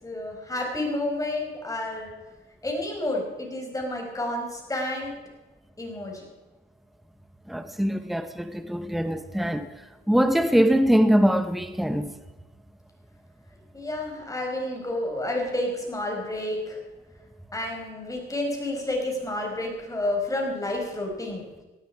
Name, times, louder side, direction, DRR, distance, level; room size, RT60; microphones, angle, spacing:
voice 1, 0.0-2.1 2.6-5.1 5.8-6.3 13.7-16.8 17.5-21.5, left 1 dB, 15° left, 5.2 m, -30 dB
voice 2, 7.5-9.7 10.1-12.1, equal, ahead, 1.0 m, -22 dB
18.5 x 13.0 x 4.9 m
cardioid pair, 90°, 20 cm